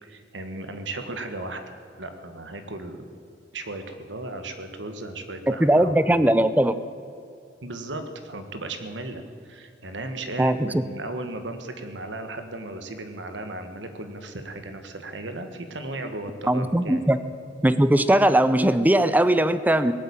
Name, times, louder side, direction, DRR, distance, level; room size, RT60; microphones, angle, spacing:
voice 1, 0.0-3.0 3.5-6.2 7.6-17.0, right 2 dB, 90° right, 7 dB, 1.7 m, -36 dB
voice 2, 5.5-6.7 10.4-10.8 16.5-17.2 17.6-19.9, right 1 dB, 10° right, 12 dB, 0.6 m, -19 dB
18.5 x 8.5 x 8.8 m, 2.5 s
head